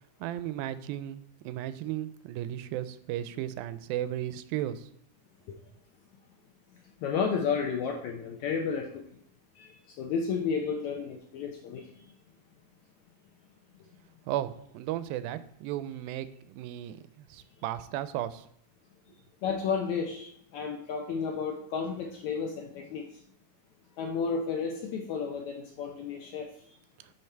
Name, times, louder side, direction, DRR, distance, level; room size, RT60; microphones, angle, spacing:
voice 1, 0.2-4.9 14.3-18.4, right 12 dB, 90° right, 14 dB, 2.4 m, -35 dB
voice 2, 7.0-9.0 9.6-11.9 19.4-23.0 24.0-26.5, left 6 dB, 75° left, 2 dB, 1.7 m, -32 dB
9.7 x 5.3 x 4.5 m, 0.66 s
omnidirectional pair, 4.1 m